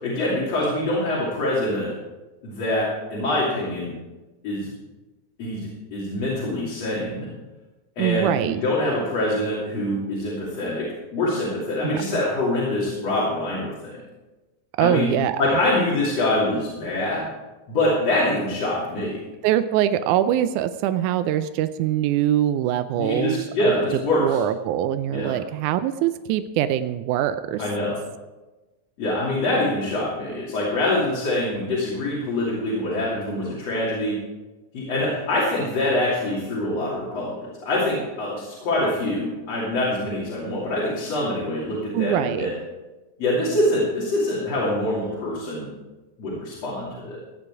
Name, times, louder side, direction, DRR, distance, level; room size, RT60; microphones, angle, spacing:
voice 1, 0.0-1.9 2.4-2.9 3.1-3.9 4.4-4.7 5.4-7.3 8.0-10.8 11.1-14.0 14.8-15.1 15.4-17.3 17.7-19.3 23.0-24.4 25.1-25.3 27.6-27.9 29.0-34.1 34.7-37.4 37.6-42.5 43.2-45.7 46.2-47.2, left 1 dB, 60° left, -7 dB, 4.0 m, -24 dB
voice 2, 8.0-8.6 11.8-12.2 14.8-15.4 19.4-23.7 24.2-27.6 41.9-42.5, right 11 dB, 90° right, 11 dB, 2.1 m, -23 dB
16.5 x 9.3 x 4.8 m, 1.1 s
omnidirectional pair, 3.4 m